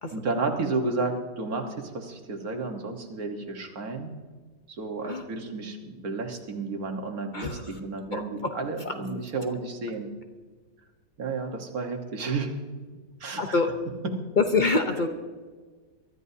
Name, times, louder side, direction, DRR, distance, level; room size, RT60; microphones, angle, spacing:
voice 1, 0.1-4.1 4.7-10.1 11.2-12.5 13.2-13.4, right 3 dB, 55° right, 3 dB, 1.8 m, -32 dB
voice 2, 7.3-7.8 8.1-8.5 8.8-8.9 13.4-13.7 14.4-15.1, left 3 dB, 60° left, 5 dB, 0.5 m, -26 dB
23.5 x 13.0 x 2.8 m, 1.4 s
omnidirectional pair, 2.0 m